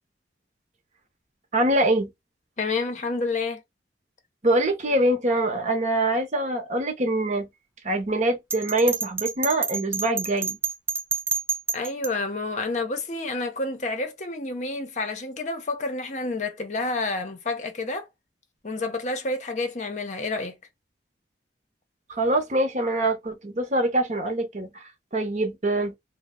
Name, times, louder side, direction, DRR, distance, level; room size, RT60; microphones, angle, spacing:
voice 1, 1.5-2.1 4.4-7.5 7.8-10.6 22.1-24.8 25.1-25.9, right 1 dB, 40° right, 0.8 m, -24 dB
voice 2, 2.6-3.6 11.7-18.1 18.6-20.6, left 3 dB, 40° left, 0.6 m, -29 dB
Bell, 8.5-12.1, right 5 dB, 15° right, 0.4 m, -28 dB
3.1 x 2.1 x 3.6 m
head